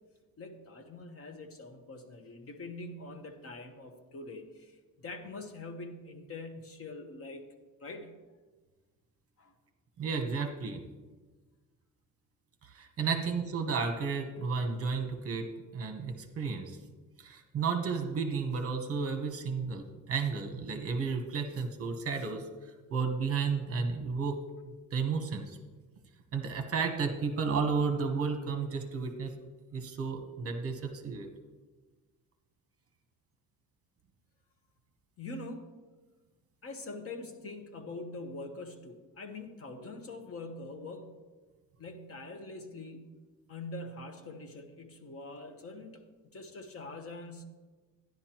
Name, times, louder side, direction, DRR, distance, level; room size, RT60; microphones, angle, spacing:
voice 1, 0.4-7.4 7.8-8.2 9.4-9.5 13.0-13.1 35.2-35.7 36.6-41.2 41.8-43.1 43.5-46.0 46.3-47.4, left 2 dB, 45° left, 5 dB, 1.0 m, -44 dB
voice 2, 10.0-10.8 12.6-15.5 15.7-16.8 17.2-24.4 24.9-25.6 26.3-29.3 29.7-31.3, right 5 dB, 45° right, 5 dB, 1.0 m, -32 dB
13.0 x 10.5 x 3.0 m, 1.3 s
cardioid pair, 155°, 33 cm